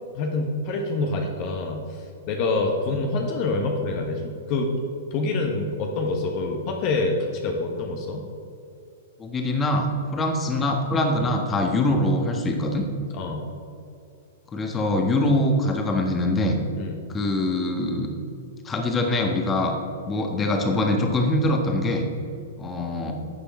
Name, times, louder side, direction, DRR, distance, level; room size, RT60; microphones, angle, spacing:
voice 1, 0.1-4.7 5.1-8.2 11.2-11.3 13.2-13.4 16.8-17.0, left 3 dB, 45° left, 2 dB, 1.2 m, -26 dB
voice 2, 9.2-12.8 14.5-16.6 17.1-18.1 18.6-19.7 20.0-22.1 22.6-23.1, left 1 dB, 20° left, 2 dB, 1.5 m, -23 dB
11.5 x 6.9 x 4.4 m, 2.6 s
hypercardioid pair, 110°, 0 cm